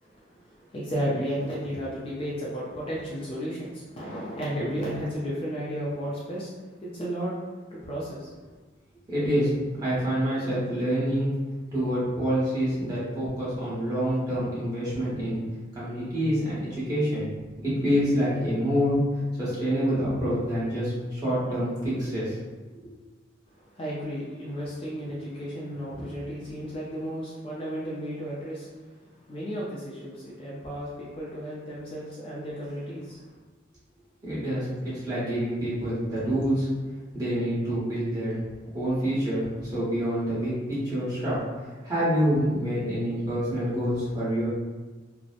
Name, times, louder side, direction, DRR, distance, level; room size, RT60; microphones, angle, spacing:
voice 1, 0.0-6.5 6.8-7.3 7.7-8.6 23.7-28.9 29.2-33.3, equal, 30° left, -7 dB, 0.4 m, -33 dB
voice 2, 9.1-9.5 9.8-11.3 11.7-15.4 15.7-17.2 17.6-22.3 22.7-22.9 34.2-36.7 37.1-38.4 38.7-44.5, equal, 20° right, -10 dB, 1.0 m, -27 dB
2.7 x 2.0 x 2.4 m, 1.3 s
head